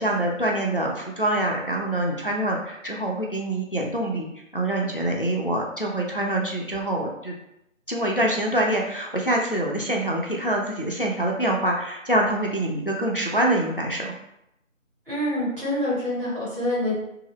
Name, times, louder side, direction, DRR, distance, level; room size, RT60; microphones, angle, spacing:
voice 1, 0.0-4.3 4.5-7.3 7.9-14.1, right 1 dB, 45° left, -1 dB, 0.4 m, -25 dB
voice 2, 15.1-16.9, left 1 dB, 40° right, -8 dB, 1.4 m, -26 dB
2.7 x 2.4 x 3.0 m, 0.82 s
figure-of-eight pair, 170°, 40 cm